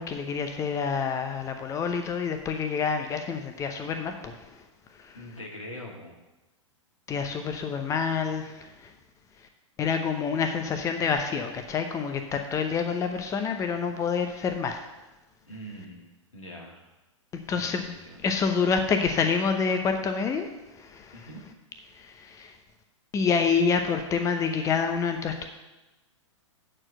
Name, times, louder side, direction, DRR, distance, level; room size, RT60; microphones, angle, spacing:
voice 1, 0.0-4.3 5.0-5.1 7.1-8.7 9.8-14.8 17.5-17.9 18.2-20.5 20.8-21.1 22.2-22.5 23.1-25.5, left 5 dB, 20° left, 6 dB, 0.8 m, -27 dB
voice 2, 5.1-6.1 15.5-16.1 16.3-16.9 17.5-18.2 21.1-21.4, equal, 90° left, -2 dB, 2.6 m, -43 dB
8.8 x 4.5 x 7.5 m, 1.1 s
figure-of-eight pair, 110°, 16 cm